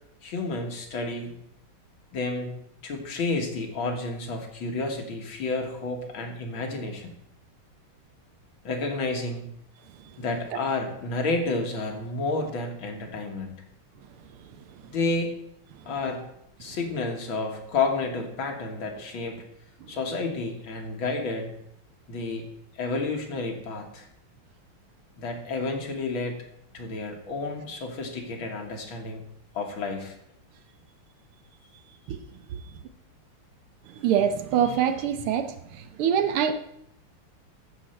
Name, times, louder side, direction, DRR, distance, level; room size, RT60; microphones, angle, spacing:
voice 1, 0.2-1.4 2.1-2.6 2.8-7.1 8.6-9.5 10.2-13.6 14.9-15.3 15.9-16.3 16.6-19.4 19.9-21.5 22.1-22.5 22.7-24.1 25.2-26.4 26.7-29.2 29.5-30.1, left 3 dB, 65° left, 2 dB, 2.3 m, -30 dB
voice 2, 34.0-35.5 36.0-36.5, right 9 dB, 80° right, 10 dB, 1.7 m, -24 dB
14.5 x 6.5 x 4.4 m, 0.76 s
omnidirectional pair, 2.4 m